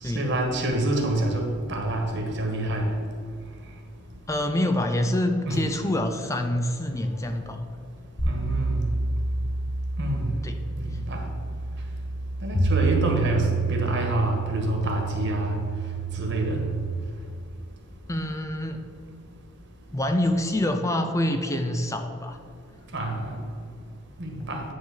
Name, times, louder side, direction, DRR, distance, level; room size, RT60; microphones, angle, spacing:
voice 1, 0.0-2.9 5.5-5.6 8.2-8.9 10.0-10.3 10.8-11.2 12.4-15.6 16.1-16.6 22.9-23.4 24.2-24.6, right 1 dB, 60° right, 1 dB, 1.7 m, -27 dB
voice 2, 4.3-7.6 10.4-10.6 10.9-11.0 18.1-18.8 19.9-22.4 24.4-24.5, left 1 dB, 15° left, 6 dB, 0.5 m, -26 dB
sound 1, 8.2-16.9, right 3 dB, 70° left, 1.8 m, -28 dB
10.0 x 3.8 x 7.2 m, 2.4 s
head